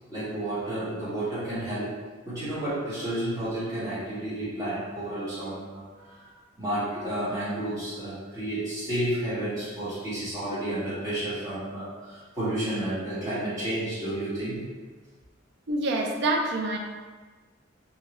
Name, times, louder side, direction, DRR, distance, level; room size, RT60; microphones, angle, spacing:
voice 1, 0.1-1.9 2.2-6.3 6.6-14.7, right 1 dB, 20° right, -13 dB, 1.5 m, -31 dB
voice 2, 15.7-16.8, right 2 dB, 60° right, 2 dB, 0.4 m, -26 dB
2.7 x 2.7 x 3.0 m, 1.4 s
head